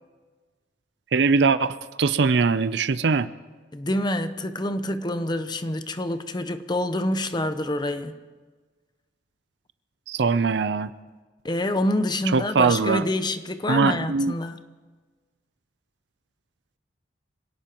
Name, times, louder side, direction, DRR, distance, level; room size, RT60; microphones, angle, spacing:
voice 1, 1.1-3.3 10.1-10.9 12.3-13.0 13.7-14.3, right 4 dB, 65° right, 0.5 m, -21 dB
voice 2, 3.7-8.1 11.4-14.6, left 1 dB, 25° left, 0.7 m, -27 dB
26.0 x 17.5 x 3.0 m
head